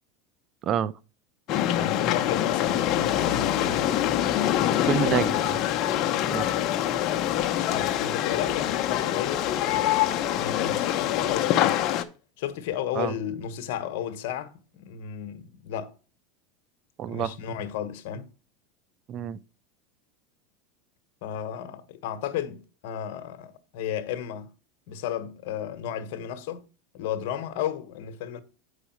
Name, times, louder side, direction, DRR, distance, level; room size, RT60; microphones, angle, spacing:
sound 1, 1.5-12.0, left 12 dB, 45° left, 0.8 m, -25 dB
voice 1, 1.7-3.9 7.5-11.8 12.4-15.9 17.1-18.3 21.2-24.5 24.9-26.6 26.9-28.4, left 9 dB, 70° left, 1.1 m, -33 dB
voice 2, 4.8-5.6 6.3-6.5 12.9-13.1 17.0-17.3 19.1-19.4, right 10 dB, 40° right, 0.5 m, -27 dB
8.1 x 4.9 x 4.4 m
supercardioid pair, 120°, 0 cm